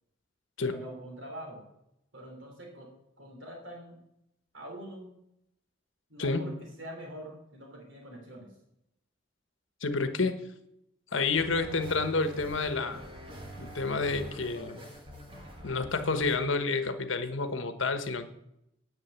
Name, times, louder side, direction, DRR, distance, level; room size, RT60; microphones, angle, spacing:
voice 1, 0.6-1.6 2.1-2.9 3.2-4.0 4.5-5.1 6.1-8.5, equal, 70° right, 1 dB, 3.1 m, -44 dB
voice 2, 9.8-10.4 11.1-13.0 13.6-14.8 15.6-18.2, left 3 dB, 70° left, 9 dB, 1.2 m, -29 dB
sound 1, 11.3-16.4, equal, 25° right, 2.0 m, -45 dB
9.9 x 8.7 x 7.3 m, 0.81 s
head